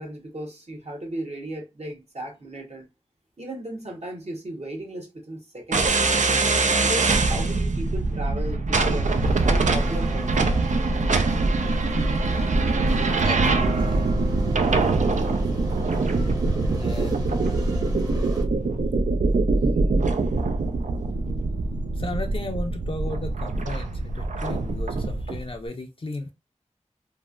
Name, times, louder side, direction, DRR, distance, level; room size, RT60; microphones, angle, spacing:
voice 1, 0.0-2.9 3.4-6.0 6.5-9.2 9.4-10.5, right 1 dB, 60° right, 1.0 m, -35 dB
sound 1, 5.7-25.4, right 3 dB, 80° right, 0.4 m, -23 dB
sound 2, 9.1-18.4, equal, 30° right, 0.9 m, -39 dB
voice 2, 13.2-14.0 16.8-17.4 22.0-26.3, left 2 dB, 45° left, 0.5 m, -35 dB
3.1 x 2.1 x 2.4 m
wide cardioid pair, 55°, 12 cm